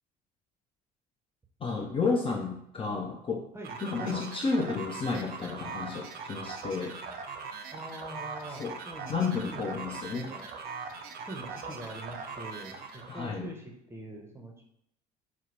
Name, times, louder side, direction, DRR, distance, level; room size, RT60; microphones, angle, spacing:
voice 1, 1.6-3.5 3.8-7.0 8.6-8.8 9.1-10.3 13.1-13.5, left 4 dB, 25° left, 0 dB, 0.4 m, -31 dB
voice 2, 3.5-4.2 7.7-10.5 11.3-14.6, right 1 dB, 10° right, 0 dB, 0.7 m, -44 dB
sound 1, 3.6-13.4, right 5 dB, 50° right, 0.4 m, -41 dB
2.8 x 2.0 x 3.1 m, 0.74 s
figure-of-eight pair, 55°, 21 cm